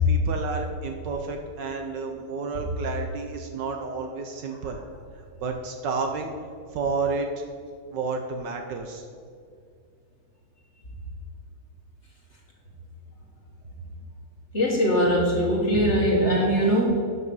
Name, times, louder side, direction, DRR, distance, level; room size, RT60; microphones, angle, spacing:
voice 1, 0.1-4.8 5.2-6.3 6.7-7.4 7.9-9.0, right 4 dB, 65° right, 4 dB, 1.3 m, -31 dB
voice 2, 14.5-16.9, equal, 35° left, -2 dB, 1.6 m, -21 dB
12.0 x 5.7 x 5.5 m, 2.2 s
omnidirectional pair, 2.3 m